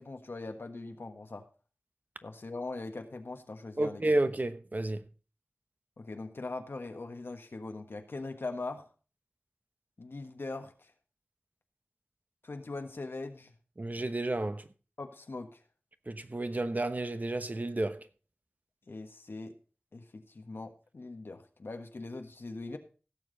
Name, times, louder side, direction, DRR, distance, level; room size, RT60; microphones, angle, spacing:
voice 1, 0.0-1.5 2.2-4.0 6.0-8.9 10.0-10.9 12.4-13.5 15.0-15.6 18.9-19.6 19.9-22.8, left 3 dB, 85° left, 1.5 m, -41 dB
voice 2, 3.8-5.1 13.8-14.7 16.1-18.1, right 2 dB, 45° right, 1.0 m, -31 dB
16.5 x 7.3 x 4.0 m
wide cardioid pair, 55°, 4 cm